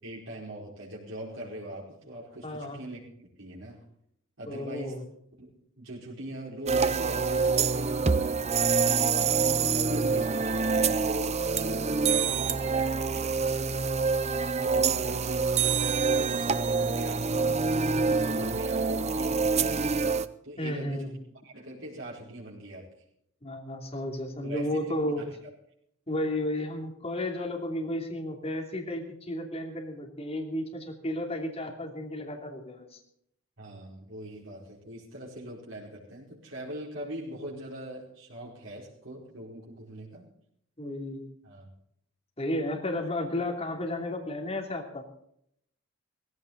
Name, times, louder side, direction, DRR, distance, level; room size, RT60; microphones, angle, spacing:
voice 1, 0.0-3.0 3.4-3.8 4.4-5.0 5.4-5.5 5.8-8.0 8.7-11.3 11.6-13.9 14.6-15.7 16.1-17.5 17.9-20.1 20.4-21.1 21.4-22.9 24.4-25.3 33.6-40.2 41.4-41.7, right 1 dB, 65° right, -4 dB, 5.0 m, -41 dB
voice 2, 2.4-2.8 4.5-5.1 20.6-21.1 23.4-25.3 26.1-33.0 40.8-41.3 42.4-45.0, left 1 dB, 30° left, 1 dB, 2.9 m, -33 dB
sound 1, 6.7-20.3, right 5 dB, 30° right, 0.6 m, -26 dB
17.5 x 16.0 x 4.1 m, 0.70 s
head